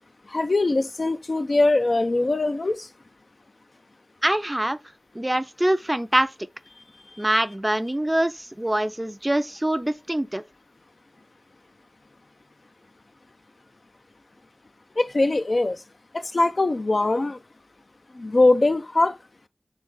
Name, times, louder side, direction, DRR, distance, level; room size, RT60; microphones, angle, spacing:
voice 1, 0.3-2.9 15.0-15.8 16.1-17.4 18.1-19.2, left 2 dB, 55° left, 0.4 m, -22 dB
voice 2, 4.2-4.8 5.1-6.3 7.2-10.4, right 1 dB, 20° right, 0.4 m, -24 dB
3.8 x 3.4 x 3.8 m
cardioid pair, 45°, 0 cm